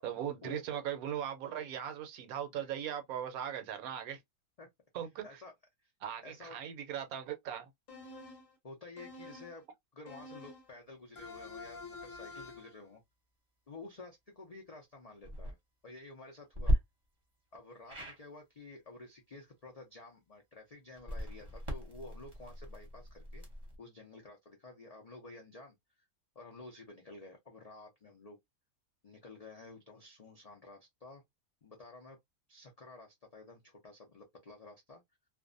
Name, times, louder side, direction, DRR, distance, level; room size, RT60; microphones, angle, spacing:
voice 1, 0.0-4.2 4.9-5.2 6.0-7.7, right 9 dB, 80° right, 1.1 m, -39 dB
voice 2, 6.2-6.6 8.6-9.6 9.9-13.0 13.7-15.6 15.8-16.8 17.5-23.5 23.8-25.7 26.4-28.4 29.0-31.2 31.6-32.2 32.5-35.0, left 2 dB, 75° left, 0.3 m, -51 dB
sound 1, 7.9-8.5 9.0-9.6 10.1-10.7 11.2-12.8, left 3 dB, 40° left, 0.9 m, -48 dB
sound 2, 15.2-15.5 16.5-16.8 17.9-18.2 20.9-23.8, equal, 25° right, 0.7 m, -35 dB
2.5 x 2.1 x 2.4 m
omnidirectional pair, 1.6 m